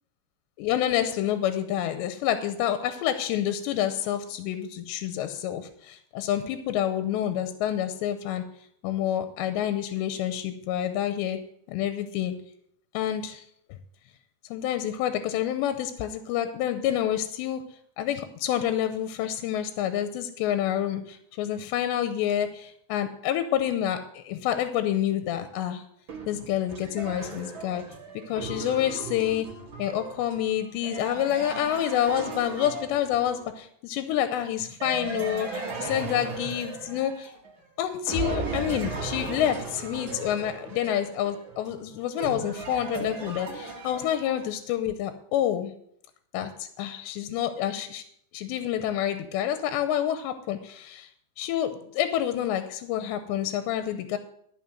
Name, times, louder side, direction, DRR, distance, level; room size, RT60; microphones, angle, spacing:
voice 1, 0.6-8.4 8.8-11.4 11.7-12.4 12.9-13.4 14.5-17.6 18.0-25.8 26.3-27.8 28.3-29.5 29.8-37.3 37.8-45.7 46.3-48.0 48.3-51.1 51.4-54.2, left 11 dB, 90° left, 9 dB, 2.9 m, -28 dB
sound 1, 26.1-33.5 34.8-37.7 38.1-44.5, right 3 dB, 45° right, 1.8 m, -36 dB
13.5 x 5.9 x 7.8 m, 0.69 s
omnidirectional pair, 5.0 m